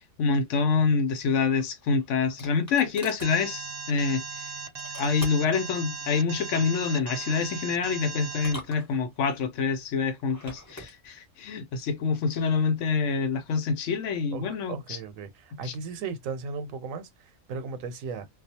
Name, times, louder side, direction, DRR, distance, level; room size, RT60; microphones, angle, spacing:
voice 1, 0.0-4.5 5.0-15.0 15.6-15.7, left 5 dB, 70° left, 0.9 m, -26 dB
sound 1, 1.6-3.3 4.8-5.6 7.0-7.4 8.3-9.4 10.2-10.9, left 1 dB, 15° left, 1.0 m, -44 dB
Alarm, 3.2-8.5, right 5 dB, 70° right, 0.3 m, -38 dB
voice 2, 14.3-18.3, right 5 dB, 90° right, 1.0 m, -36 dB
2.3 x 2.2 x 2.7 m
omnidirectional pair, 1.4 m